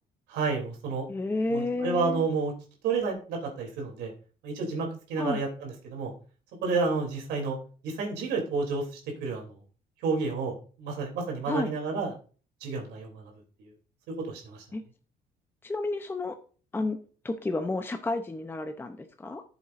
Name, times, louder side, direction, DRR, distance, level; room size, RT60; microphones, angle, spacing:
voice 1, 0.3-1.1 1.5-2.5 2.8-4.1 4.4-6.1 6.6-7.6 7.8-9.5 10.0-12.1 12.6-13.2 14.3-14.6, right 4 dB, 85° right, 0 dB, 3.0 m, -30 dB
voice 2, 1.1-2.2 5.2-5.4 11.4-11.7 14.7-14.8 15.6-16.4 16.7-17.0 17.2-19.4, left 2 dB, 15° left, 7 dB, 0.7 m, -31 dB
13.5 x 7.2 x 2.6 m, 0.39 s
cardioid pair, 110°, 17 cm